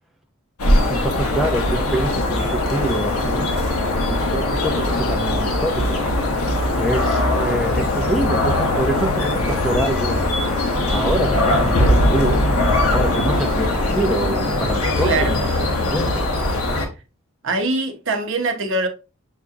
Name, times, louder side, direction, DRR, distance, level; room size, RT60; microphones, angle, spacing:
sound 1, 0.6-16.9, left 1 dB, 85° left, 1.0 m, -20 dB
voice 1, 0.9-3.5 4.1-6.0 6.8-10.2 10.9-12.4 12.9-16.2, right 1 dB, ahead, 0.6 m, -25 dB
voice 2, 15.0-15.4 17.4-18.9, right 2 dB, 60° right, 0.8 m, -22 dB
6.4 x 2.9 x 2.4 m
head